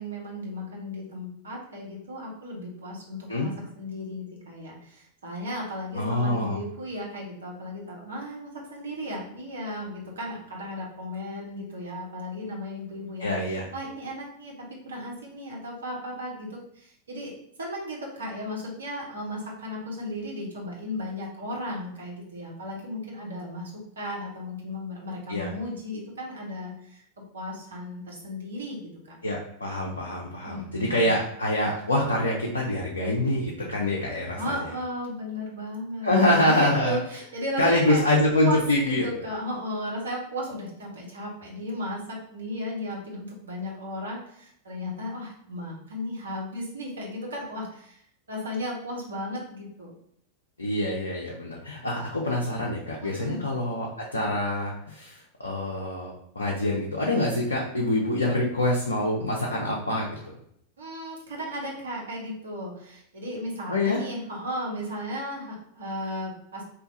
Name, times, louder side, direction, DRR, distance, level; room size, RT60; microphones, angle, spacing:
voice 1, 0.0-13.3 13.7-17.3 17.6-27.0 27.3-29.2 30.4-31.1 34.4-38.0 38.3-48.0 48.3-49.9 53.0-53.4 60.8-66.6, equal, 70° right, -2 dB, 0.9 m, -35 dB
voice 2, 5.9-6.6 13.2-13.7 25.3-25.5 29.2-34.6 36.0-37.0 37.6-39.0 50.6-60.3 63.7-64.0, left 1 dB, 75° left, -3 dB, 0.5 m, -25 dB
2.7 x 2.3 x 3.8 m, 0.71 s
figure-of-eight pair, 90°, 0 cm